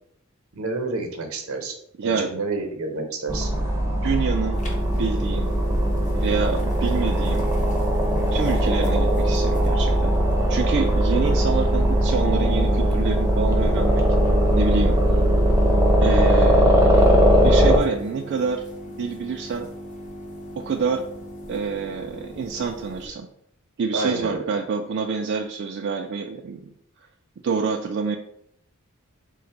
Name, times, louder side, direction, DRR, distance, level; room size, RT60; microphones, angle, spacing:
voice 1, 0.5-1.7 2.0-3.5 23.9-24.5, right 3 dB, 75° right, 4 dB, 0.8 m, -29 dB
voice 2, 2.0-2.3 4.0-4.6 5.0-5.5 6.1-7.5 8.3-10.2 10.5-14.1 14.5-15.0 16.0-18.6 19.0-19.7 20.6-21.0 21.5-23.3 23.8-26.7 27.4-28.2, right 5 dB, 55° right, 3 dB, 0.3 m, -27 dB
sound 1, 3.3-17.8, equal, 10° right, 0.6 m, -19 dB
sound 2, 4.5-23.1, equal, 35° left, 0.7 m, -38 dB
3.8 x 2.1 x 4.5 m, 0.69 s
head